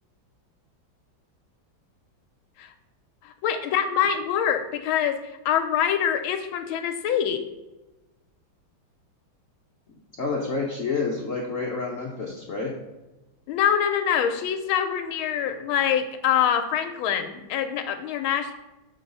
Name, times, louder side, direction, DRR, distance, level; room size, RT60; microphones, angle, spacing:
voice 1, 3.2-7.4 13.5-18.5, left 9 dB, 85° left, 7 dB, 1.4 m, -25 dB
voice 2, 9.9-12.7, left 4 dB, 55° left, -2 dB, 0.9 m, -29 dB
7.1 x 3.8 x 5.4 m, 1.0 s
omnidirectional pair, 2.2 m